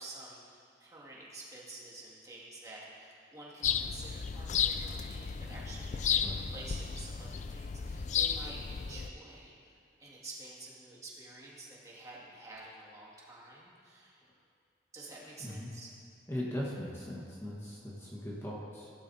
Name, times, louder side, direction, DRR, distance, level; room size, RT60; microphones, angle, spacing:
voice 1, 0.0-14.2 14.9-15.9, right 2 dB, 20° right, -6 dB, 2.1 m, -49 dB
sound 1, 3.6-9.1, left 7 dB, 40° left, 0.3 m, -33 dB
voice 2, 16.3-18.9, left 1 dB, 15° left, -5 dB, 1.3 m, -39 dB
16.0 x 12.0 x 2.8 m, 2.3 s
head